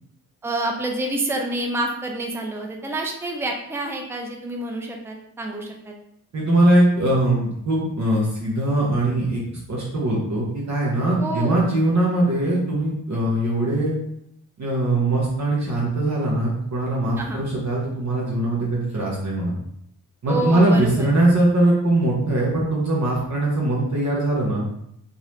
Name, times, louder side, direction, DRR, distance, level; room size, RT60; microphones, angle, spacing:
voice 1, 0.4-6.0 11.2-11.7 17.2-17.4 20.3-21.1, right 2 dB, 5° right, 1 dB, 0.5 m, -28 dB
voice 2, 6.3-9.4 9.7-13.9 14.6-19.5 20.2-24.6, right 1 dB, 50° right, -5 dB, 1.1 m, -21 dB
4.0 x 3.1 x 2.6 m, 0.74 s
cardioid pair, 85°, 36 cm